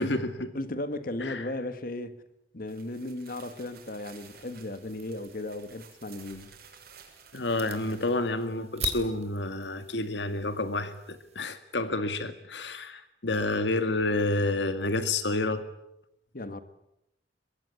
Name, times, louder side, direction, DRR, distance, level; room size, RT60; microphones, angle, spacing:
voice 1, 0.0-0.5 1.2-1.5 7.3-15.6, left 2 dB, 80° left, 1.9 m, -29 dB
voice 2, 0.5-2.2 2.5-6.5 16.3-16.6, left 1 dB, 55° left, 1.6 m, -36 dB
sound 1, 2.6-8.5, right 7 dB, 55° right, 6.8 m, -54 dB
sound 2, 4.2-11.4, right 5 dB, 40° right, 3.8 m, -44 dB
24.0 x 22.0 x 9.6 m
head